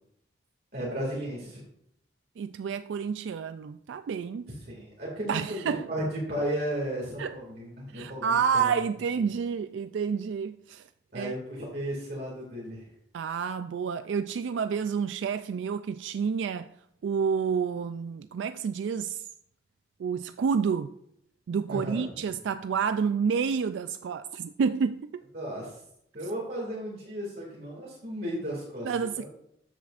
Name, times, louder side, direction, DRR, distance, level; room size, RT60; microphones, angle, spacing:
voice 1, 0.7-1.6 4.5-8.4 8.6-8.7 11.1-12.8 21.7-22.1 25.3-25.8 26.1-29.3, equal, 55° right, 2.3 m, -34 dB
voice 2, 2.4-4.5 5.3-5.9 7.2-7.3 7.9-10.9 11.1-11.3 13.1-16.7 17.0-19.3 20.0-21.0 21.5-25.2 28.8-29.2, right 6 dB, 75° right, 0.3 m, -29 dB
13.0 x 7.6 x 2.5 m
head